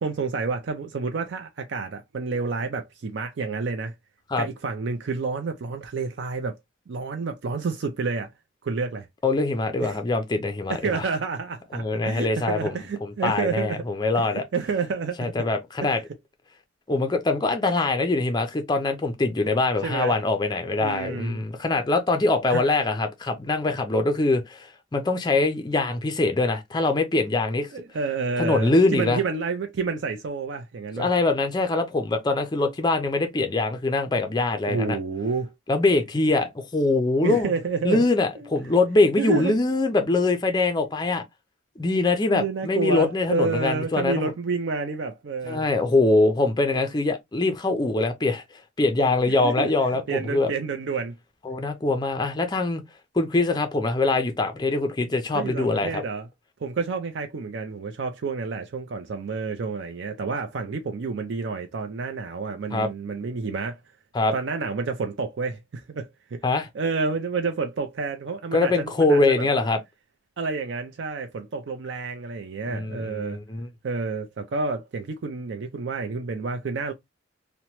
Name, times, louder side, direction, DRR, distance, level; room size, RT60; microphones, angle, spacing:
voice 1, 0.0-3.9 4.4-6.6 6.9-8.3 8.6-9.1 9.8-10.0 10.7-13.8 14.1-15.3 15.8-15.9 19.8-20.2 20.8-21.4 22.5-22.6 27.7-31.1 34.7-35.5 37.2-38.0 38.4-38.5 39.2-39.6 42.3-45.6 49.3-49.7 50.1-51.1 55.3-56.3 56.6-63.8 64.3-66.4 66.7-69.5 70.4-73.4 73.8-76.9, right 4 dB, 60° right, 0.4 m, -29 dB
voice 2, 9.2-11.0 11.7-14.4 15.2-16.0 16.9-27.7 28.4-29.2 31.0-35.0 35.7-37.5 37.8-41.2 41.8-44.3 45.5-48.4 48.8-50.5 51.4-52.8 53.1-56.0 62.7-62.9 64.1-64.3 66.4-66.7 68.5-69.8 72.7-73.7, left 2 dB, 20° left, 0.4 m, -23 dB
2.9 x 2.1 x 2.9 m
head